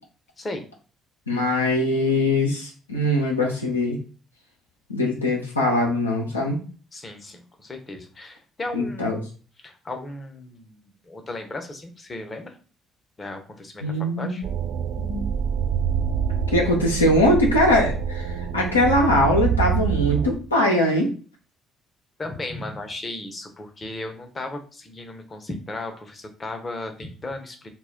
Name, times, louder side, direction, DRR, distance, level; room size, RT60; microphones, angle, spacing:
voice 1, 1.3-4.0 4.9-6.6 8.7-9.2 13.8-14.4 15.0-15.3 16.5-18.2 18.5-21.1, left 1 dB, 90° left, -1 dB, 0.4 m, -21 dB
voice 2, 6.9-9.1 9.6-12.6 13.2-13.8 14.2-14.4 22.2-27.7, left 2 dB, 30° left, 5 dB, 0.7 m, -35 dB
sound 1, 14.4-20.4, right 7 dB, 60° right, 0.3 m, -26 dB
2.1 x 2.1 x 3.6 m, 0.38 s
figure-of-eight pair, 45°, 0 cm